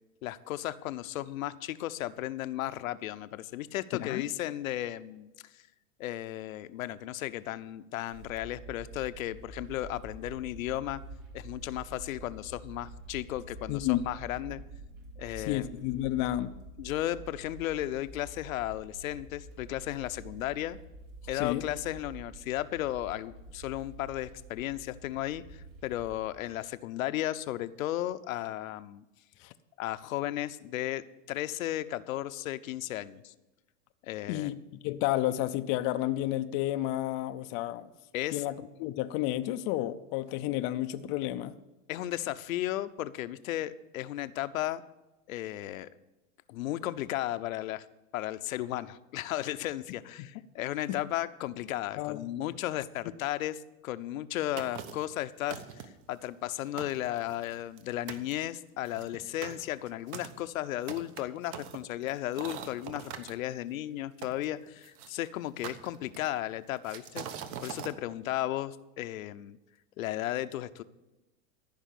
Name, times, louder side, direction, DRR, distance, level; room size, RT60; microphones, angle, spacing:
voice 1, 0.2-5.6 6.0-11.0 11.3-14.6 15.2-15.6 16.8-20.8 21.3-29.0 29.8-33.3 34.0-34.5 38.1-38.4 41.9-44.8 45.3-45.9 46.5-47.8 48.1-55.6 56.1-67.3 67.6-69.6 70.0-70.8, left 14 dB, 75° left, 12 dB, 0.7 m, -35 dB
voice 2, 3.9-4.2 13.7-14.1 15.4-16.5 21.3-21.6 29.4-29.5 34.3-34.6 34.8-37.9 38.3-41.5 50.2-50.3 50.9-51.0 52.0-52.2 52.5-52.6, left 14 dB, 30° left, 9 dB, 0.4 m, -31 dB
sound 1, 8.1-26.3, right 2 dB, 65° right, 3.3 m, -48 dB
sound 2, 54.6-55.1 55.5-56.0 56.5-56.6 56.8-57.8 58.1-58.3 58.8-63.3 64.2-65.1 65.6-66.4 66.8-67.9, right 8 dB, 45° right, 1.1 m, -42 dB
14.0 x 5.6 x 8.3 m, 1.0 s
supercardioid pair, 135°, 41 cm